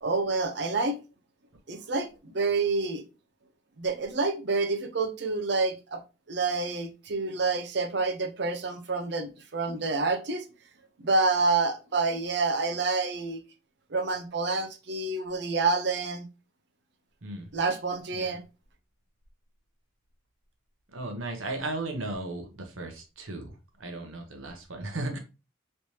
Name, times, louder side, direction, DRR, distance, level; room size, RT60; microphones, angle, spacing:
voice 1, 0.0-1.0 1.7-3.0 3.8-6.0 6.3-10.4 11.0-13.4 13.9-16.3 17.5-18.4, right 3 dB, 55° right, 0.6 m, -28 dB
voice 2, 20.9-23.5 23.8-25.2, right 2 dB, 80° right, 0.9 m, -35 dB
3.2 x 3.2 x 2.7 m
head